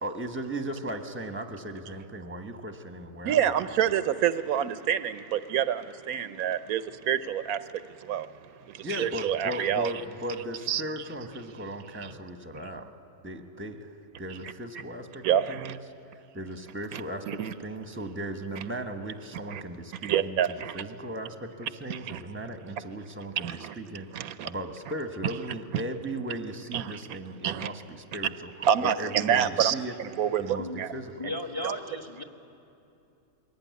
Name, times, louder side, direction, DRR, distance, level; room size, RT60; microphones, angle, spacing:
voice 1, 0.0-3.8 8.8-12.9 13.2-15.8 16.3-24.1 24.4-28.5 28.8-29.9 30.4-31.1, right 1 dB, 10° right, 6 dB, 1.0 m, -37 dB
voice 2, 3.2-7.6 8.0-8.3 8.7-9.9 10.7-10.8 15.2-15.8 16.9-17.0 17.3-17.5 19.5-19.6 20.0-20.8 21.9-22.2 23.4-23.7 24.1-24.5 26.7-27.2 27.4-27.7 28.6-30.9 31.2-31.3, right 9 dB, 85° right, 13 dB, 1.2 m, -27 dB
voice 3, 31.2-32.2, left 1 dB, 15° left, 5 dB, 1.1 m, -35 dB
21.5 x 17.0 x 9.5 m, 2.8 s
omnidirectional pair, 1.5 m